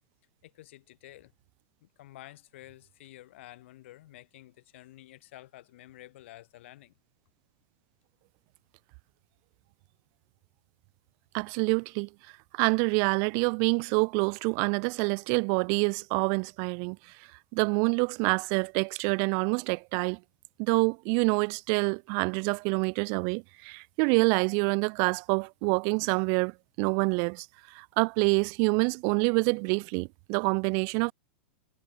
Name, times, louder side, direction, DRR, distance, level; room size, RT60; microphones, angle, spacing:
voice 1, 0.4-1.3 1.8-6.9, left 15 dB, 70° left, 5.2 m, -50 dB
voice 2, 11.3-12.1 12.5-17.0 17.5-20.2 20.6-26.5 26.8-31.1, right 40 dB or more, 50° right, 0.7 m, -27 dB
hypercardioid pair, 130°, 7 cm